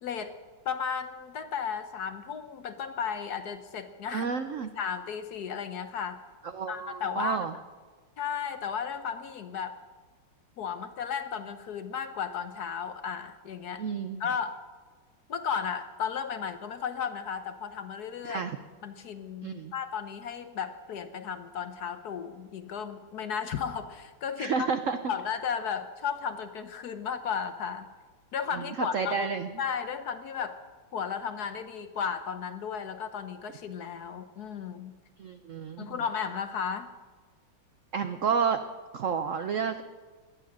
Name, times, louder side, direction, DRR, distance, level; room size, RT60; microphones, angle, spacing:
voice 1, 0.0-0.4 0.6-4.3 4.6-6.2 6.7-7.4 8.2-9.8 10.6-13.8 14.2-14.6 15.3-18.4 18.8-24.7 25.1-27.9 28.3-29.3 29.6-30.6 30.9-35.0 35.8-36.9, left 7 dB, 60° left, 9 dB, 1.2 m, -34 dB
voice 2, 4.1-4.7 6.5-7.5 13.8-14.2 18.2-18.6 19.4-19.7 24.4-25.0 28.5-29.5 35.2-36.0 37.9-38.6 38.9-39.8, right 6 dB, 75° right, 9 dB, 0.7 m, -30 dB
18.0 x 12.0 x 6.3 m, 1.4 s
omnidirectional pair, 2.2 m